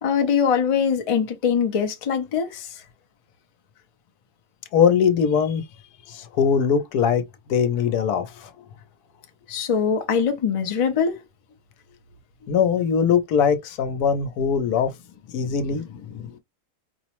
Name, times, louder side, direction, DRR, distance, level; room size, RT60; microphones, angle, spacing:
voice 1, 0.0-2.7 9.5-11.2, left 7 dB, 45° left, 0.4 m, -22 dB
voice 2, 4.7-5.6 6.1-7.2 7.5-8.5 12.5-14.9 15.3-16.4, left 7 dB, 90° left, 1.2 m, -21 dB
4.5 x 2.0 x 2.9 m
omnidirectional pair, 1.6 m